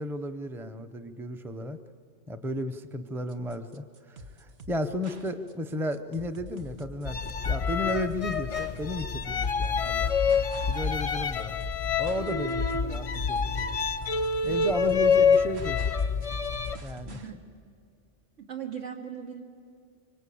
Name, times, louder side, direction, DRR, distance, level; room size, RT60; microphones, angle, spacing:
voice 1, 0.0-1.8 2.3-7.2 7.4-11.6 12.0-13.8 14.4-15.9 16.8-17.2, left 1 dB, ahead, 9 dB, 0.7 m, -34 dB
sound 1, 3.3-17.3, equal, 60° right, 1.5 m, -47 dB
sound 2, 7.0-16.8, left 5 dB, 35° left, 0.6 m, -27 dB
voice 2, 17.0-17.4 18.4-19.4, right 8 dB, 85° right, 2 dB, 2.5 m, -39 dB
25.0 x 24.5 x 8.6 m, 2.2 s
omnidirectional pair, 1.2 m